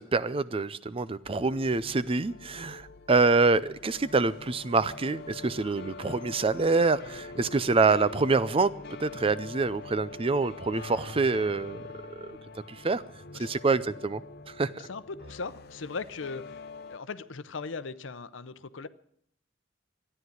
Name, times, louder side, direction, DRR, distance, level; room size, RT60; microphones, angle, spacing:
voice 1, 0.0-8.7 9.0-11.9 12.2-12.4 12.7-13.0 13.4-14.2 14.6-14.9, right 3 dB, 30° right, 16 dB, 0.5 m, -26 dB
sound 1, 1.2-17.0, left 3 dB, 55° left, 0.8 m, -44 dB
voice 2, 14.8-18.9, left 4 dB, 85° left, 15 dB, 0.7 m, -39 dB
13.0 x 9.8 x 9.3 m, 0.67 s
head